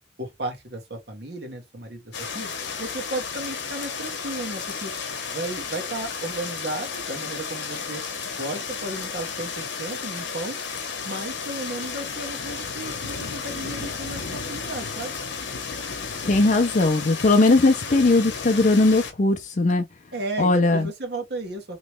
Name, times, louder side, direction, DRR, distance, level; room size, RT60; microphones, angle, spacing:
voice 1, 0.2-2.5 2.8-4.9 5.3-8.0 8.4-10.6 11.0-15.1 20.1-21.8, right 2 dB, 60° right, 1.3 m, -34 dB
sound 1, 2.1-19.1, left 5 dB, 75° left, 0.9 m, -33 dB
voice 2, 16.3-19.8 20.4-20.9, left 2 dB, 40° left, 0.5 m, -19 dB
3.1 x 3.0 x 3.1 m
head